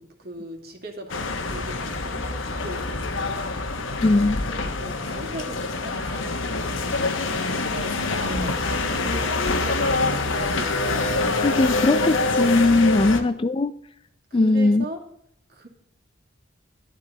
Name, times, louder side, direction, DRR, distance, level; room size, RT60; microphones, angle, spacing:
voice 1, 0.0-3.7 4.6-7.1 7.5-11.2 13.0-13.3 14.3-15.0 15.5-15.7, right 1 dB, 55° right, 2.4 m, -39 dB
sound 1, 1.1-13.2, left 3 dB, 90° left, 1.3 m, -25 dB
voice 2, 4.0-4.4 11.4-13.7 14.3-14.8, left 2 dB, 25° left, 0.4 m, -19 dB
12.5 x 11.5 x 4.1 m
head